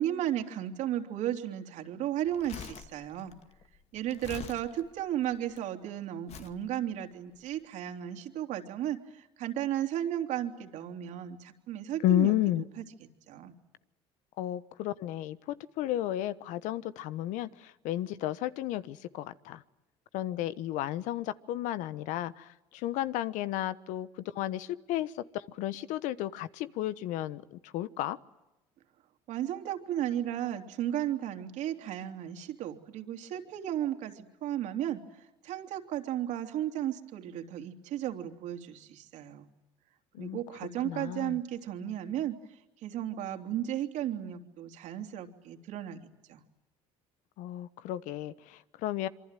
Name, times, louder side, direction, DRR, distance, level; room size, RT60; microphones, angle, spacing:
voice 1, 0.0-3.3 3.9-12.3 12.8-12.9 13.3-13.5 29.3-39.5 40.2-42.4 42.8-46.0 46.3-46.4, right 11 dB, 70° right, 5 dB, 3.3 m, -34 dB
Crumpling crinkling, 2.2-5.6 6.3-6.6 7.3-7.5, left 8 dB, 55° left, 2.2 m, -46 dB
voice 2, 12.0-12.6 14.4-19.6 20.1-28.2 40.1-40.4 40.8-41.4 47.4-49.1, left 13 dB, 75° left, 15 dB, 1.2 m, -33 dB
26.5 x 24.0 x 9.2 m, 0.96 s
supercardioid pair, 90°, 13 cm